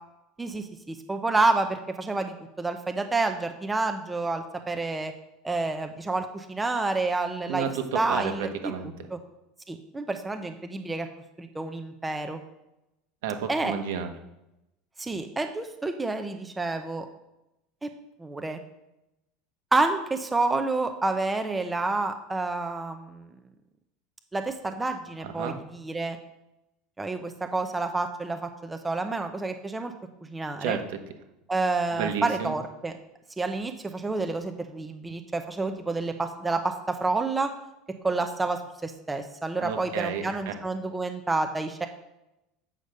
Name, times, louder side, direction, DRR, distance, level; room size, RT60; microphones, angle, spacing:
voice 1, 0.4-5.1 5.4-7.7 7.9-8.7 9.1-9.2 9.7-11.1 11.4-12.4 13.5-13.7 15.0-17.1 17.8-17.9 18.2-18.6 19.7-23.2 24.3-26.2 27.0-29.9 30.3-30.8 31.5-32.9 33.4-37.5 38.0-41.9, right 3 dB, 10° right, 6 dB, 0.6 m, -29 dB
voice 2, 7.5-9.1 13.2-14.1 25.2-25.6 30.6-31.0 31.9-32.5 39.6-40.6, right 7 dB, 80° right, 5 dB, 1.2 m, -31 dB
8.0 x 5.2 x 6.4 m, 0.91 s
supercardioid pair, 155°, 0 cm